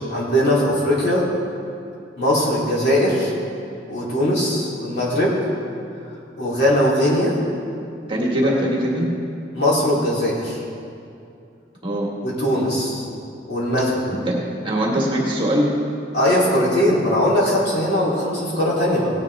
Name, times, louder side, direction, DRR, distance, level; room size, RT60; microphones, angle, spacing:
voice 1, 0.1-1.3 2.2-3.3 3.9-5.4 6.4-7.4 8.4-8.5 9.5-10.6 12.2-13.0 13.5-14.0 16.1-19.1, equal, 60° left, -6 dB, 3.5 m, -20 dB
voice 2, 8.1-9.1 11.8-12.1 14.1-15.7, equal, 30° right, -3 dB, 1.9 m, -22 dB
17.5 x 9.9 x 3.6 m, 2.5 s
head